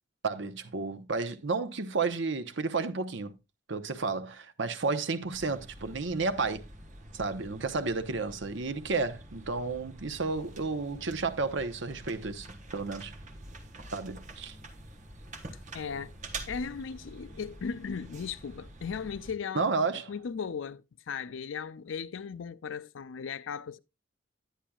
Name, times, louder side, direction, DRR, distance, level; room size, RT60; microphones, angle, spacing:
voice 1, 0.2-3.3 3.7-6.6 7.1-12.5 12.7-13.1 13.9-14.6 19.5-20.1, right 4 dB, 65° right, 0.9 m, -32 dB
sound 1, 5.3-19.3, right 2 dB, 40° right, 1.3 m, -47 dB
voice 2, 15.7-16.1 16.5-19.7 20.1-23.8, left 6 dB, 70° left, 0.4 m, -37 dB
10.0 x 9.9 x 2.3 m
head